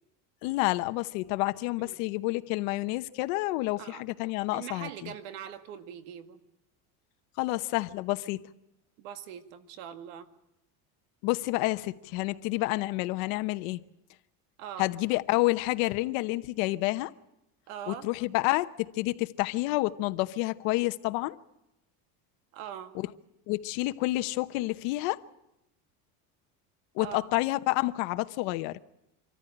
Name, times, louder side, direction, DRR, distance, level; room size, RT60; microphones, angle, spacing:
voice 1, 0.4-5.1 7.4-8.4 11.2-13.8 14.8-17.1 17.9-21.4 22.9-23.1 23.5-25.2 26.9-28.8, left 20 dB, 80° left, 1.0 m, -29 dB
voice 2, 4.5-6.4 9.0-10.3 14.6-14.9 17.7-18.1 22.5-22.9 27.0-27.3, right 9 dB, 80° right, 2.0 m, -42 dB
25.0 x 14.0 x 9.9 m
cardioid pair, 140°, 39 cm